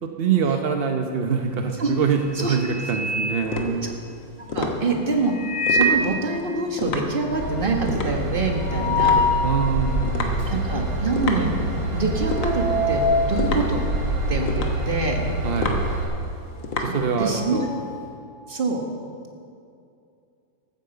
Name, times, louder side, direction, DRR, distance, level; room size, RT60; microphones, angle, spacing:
voice 1, 0.0-4.0 9.4-10.5 15.4-15.9 16.8-17.7, right 6 dB, 65° right, 4 dB, 0.6 m, -24 dB
sound 1, 1.4-1.8 2.2-4.2 5.2-6.1 6.5-6.6 6.9-7.0 7.3-9.5 10.0-10.1 10.9-11.2 11.5-14.8 15.0-18.0, left 2 dB, 45° left, 4.4 m, -26 dB
sound 2, 2.0-17.6, left 3 dB, 70° left, 1.9 m, -32 dB
voice 2, 4.5-9.2 10.5-11.5 11.9-13.0 13.3-13.9 14.3-15.2 16.9-17.6 18.5-18.8, right 3 dB, 30° right, 2 dB, 1.5 m, -25 dB
Train / Engine, 7.3-16.0, right 2 dB, 90° right, 3.6 m, -27 dB
13.0 x 9.4 x 7.6 m, 2.5 s
omnidirectional pair, 2.1 m